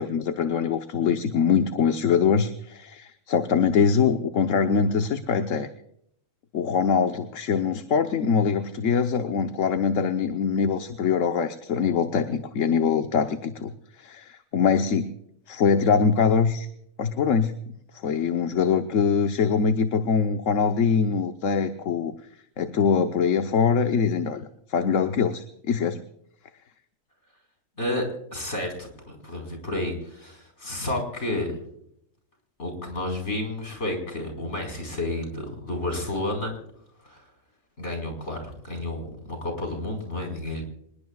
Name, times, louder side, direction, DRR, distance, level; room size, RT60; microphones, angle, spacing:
voice 1, 0.0-5.7 6.5-13.7 14.0-15.1 15.5-16.7 17.0-17.7 18.0-22.1 22.6-26.0, left 6 dB, 75° left, 7 dB, 1.3 m, -23 dB
voice 2, 27.8-31.6 32.6-36.5 37.0-37.2 37.8-40.6, left 1 dB, 60° left, 2 dB, 5.1 m, -31 dB
26.5 x 20.0 x 2.4 m, 0.74 s
omnidirectional pair, 1.3 m